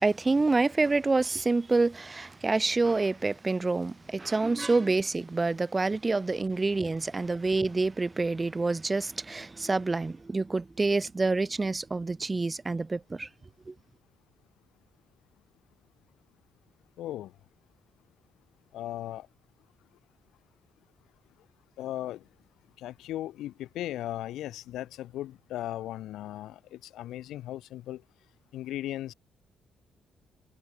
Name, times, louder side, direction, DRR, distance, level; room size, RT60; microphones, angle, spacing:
voice 1, 0.0-13.3 13.7-13.8, right 3 dB, 25° right, 1.7 m, -27 dB
voice 2, 17.0-17.3 18.7-19.3 21.8-22.2 22.8-28.0 28.5-29.1, left 13 dB, 85° left, 4.3 m, -37 dB
cardioid pair, 90°, 0 cm